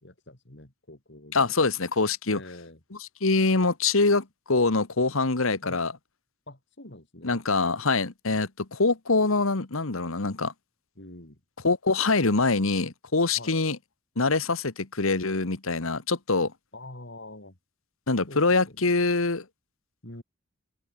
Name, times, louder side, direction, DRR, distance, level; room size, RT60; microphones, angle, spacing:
voice 1, 0.0-1.4 2.3-2.8 5.6-5.8 6.5-7.4 11.0-11.4 13.4-13.6 16.7-17.6 18.3-18.8 20.0-20.2, left 1 dB, 55° left, 3.0 m, -45 dB
voice 2, 1.3-2.4 3.2-5.9 7.2-10.5 11.6-13.8 14.2-16.5 18.1-19.4, left 3 dB, 75° left, 1.6 m, -24 dB
open air
head